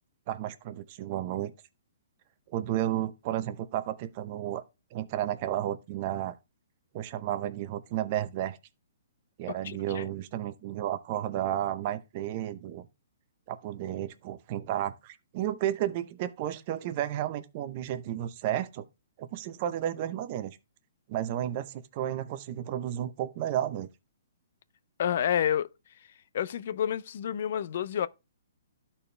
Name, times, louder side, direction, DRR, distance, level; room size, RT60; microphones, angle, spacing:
voice 1, 0.3-1.5 2.5-4.6 4.9-6.3 6.9-8.6 9.4-12.9 13.5-18.9 19.2-20.6 21.1-23.9, right 12 dB, 35° right, 0.7 m, -32 dB
voice 2, 9.6-10.0 25.0-25.7 26.3-28.1, left 9 dB, 55° left, 0.4 m, -29 dB
12.0 x 4.3 x 3.3 m
hypercardioid pair, 155°, 0 cm